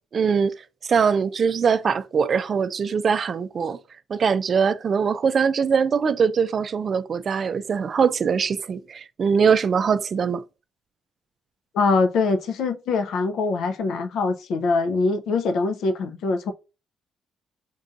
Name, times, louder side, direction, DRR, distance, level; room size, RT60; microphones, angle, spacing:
voice 1, 0.1-0.5 0.8-3.8 4.1-10.4, right 6 dB, 50° right, 0.3 m, -22 dB
voice 2, 11.7-16.5, left 4 dB, 75° left, 0.5 m, -23 dB
5.2 x 2.6 x 2.4 m
cardioid pair, 90°, 0 cm